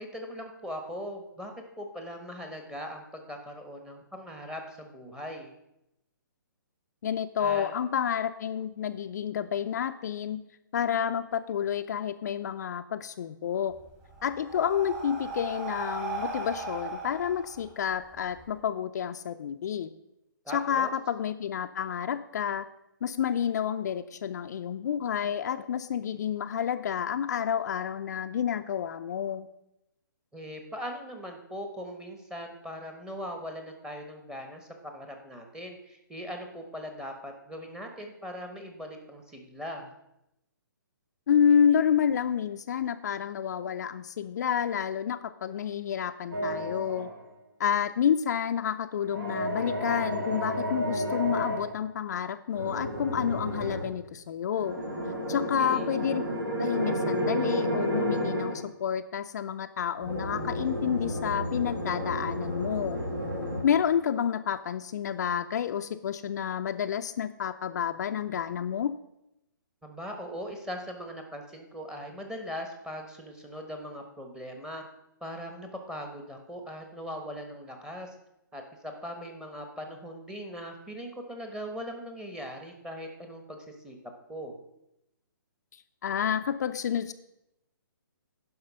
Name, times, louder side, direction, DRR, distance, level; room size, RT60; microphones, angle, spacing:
voice 1, 0.0-5.5 7.4-7.7 20.4-20.9 30.3-39.9 55.3-55.9 69.8-74.8 75.2-78.2 78.5-84.0 84.3-84.6, equal, 5° right, 4 dB, 1.2 m, -40 dB
voice 2, 7.0-10.4 10.7-13.8 14.2-19.9 20.5-22.7 23.0-29.5 41.3-47.1 47.6-54.8 55.3-56.2 56.6-63.0 63.6-68.9 85.7-87.1, left 8 dB, 55° left, 8 dB, 0.5 m, -29 dB
Breathing, 13.7-18.4, right 3 dB, 25° right, 2.4 m, -37 dB
sound 1, 46.3-47.2 49.0-51.7 52.5-53.9 54.5-58.6 60.0-63.6, equal, 65° right, 3.4 m, -31 dB
10.5 x 5.5 x 5.5 m, 0.86 s
hypercardioid pair, 135°, 11 cm